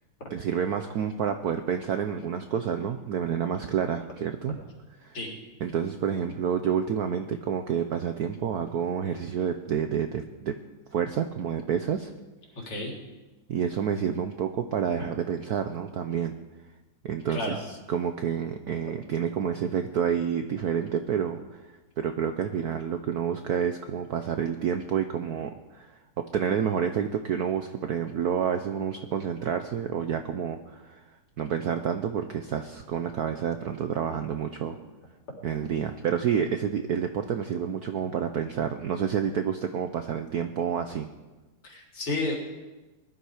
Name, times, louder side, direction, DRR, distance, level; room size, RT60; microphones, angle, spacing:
voice 1, 0.3-4.6 5.0-5.2 5.6-10.6 10.9-12.1 13.5-16.3 17.0-17.6 17.9-21.6 22.0-31.0 31.4-34.8 35.4-41.1, right 8 dB, 65° right, 7 dB, 0.9 m, -29 dB
voice 2, 41.6-42.4, left 2 dB, 85° left, -1 dB, 4.3 m, -31 dB
20.0 x 12.0 x 4.9 m, 1.1 s
omnidirectional pair, 2.3 m